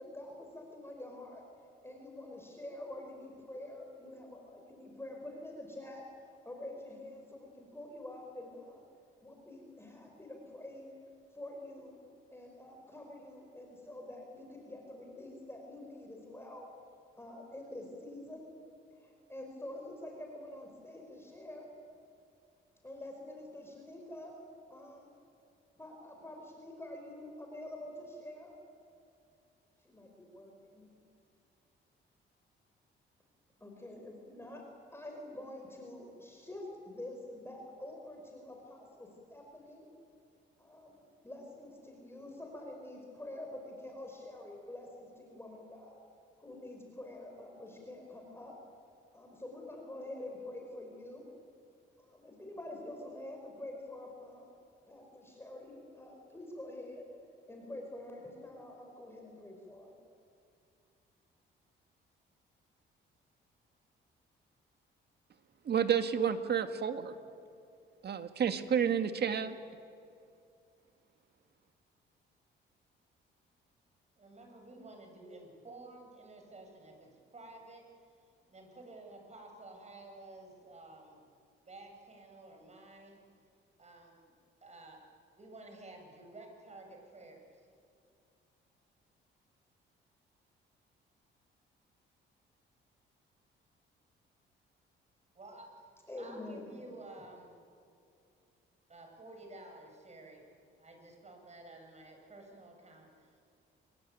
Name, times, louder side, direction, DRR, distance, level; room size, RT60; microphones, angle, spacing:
voice 1, 0.0-1.4 1.8-6.0 6.4-8.9 9.2-10.9 11.3-12.0 12.3-16.7 17.2-18.5 19.0-21.7 22.8-24.4 24.7-25.1 25.8-28.6 29.8-30.9 33.6-34.6 34.9-39.9 40.6-46.0 46.4-48.6 49.1-51.3 52.0-54.5 54.9-57.0 57.5-59.9 96.1-96.8, left 1 dB, 10° left, 1 dB, 5.6 m, -47 dB
voice 2, 65.7-67.1 68.0-69.6, right 8 dB, 55° right, 8 dB, 2.0 m, -30 dB
voice 3, 74.2-77.9 78.4-81.2 81.7-83.2 83.8-84.2 84.6-85.0 85.4-87.7 95.3-95.8 96.2-97.5 98.9-100.4 100.8-103.4, right 2 dB, 35° right, 3 dB, 7.7 m, -52 dB
26.5 x 24.0 x 9.5 m, 2.5 s
cardioid pair, 90°, 20 cm